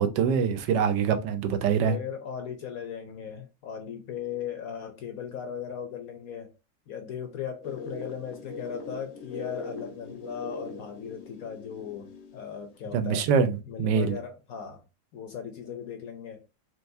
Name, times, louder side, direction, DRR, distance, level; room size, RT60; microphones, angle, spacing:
voice 1, 0.0-1.9 12.9-14.2, right 6 dB, 80° right, 1.2 m, -24 dB
voice 2, 1.8-6.5 6.9-13.3 13.7-14.8 15.1-16.4, left 8 dB, 70° left, 0.9 m, -38 dB
sound 1, 7.6-12.6, left 4 dB, 90° left, 1.6 m, -40 dB
4.5 x 3.2 x 2.6 m
omnidirectional pair, 2.0 m